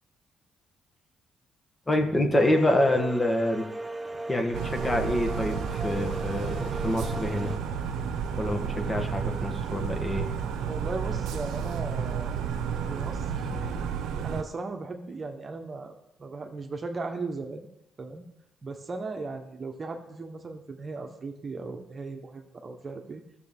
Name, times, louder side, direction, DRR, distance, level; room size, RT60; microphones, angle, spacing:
voice 1, 1.9-3.7 4.3-7.5 8.4-10.3 13.5-13.7, left 1 dB, 20° left, 4 dB, 1.5 m, -26 dB
sound 1, 2.3-7.6, right 2 dB, 10° right, 0.7 m, -37 dB
sound 2, 4.5-14.4, right 7 dB, 85° right, 0.7 m, -31 dB
voice 2, 10.6-12.3 12.9-13.9 14.2-17.7 18.0-18.3 18.6-23.2, right 3 dB, 40° right, 5 dB, 1.1 m, -37 dB
13.0 x 6.9 x 3.7 m, 0.82 s
cardioid pair, 90°, 0 cm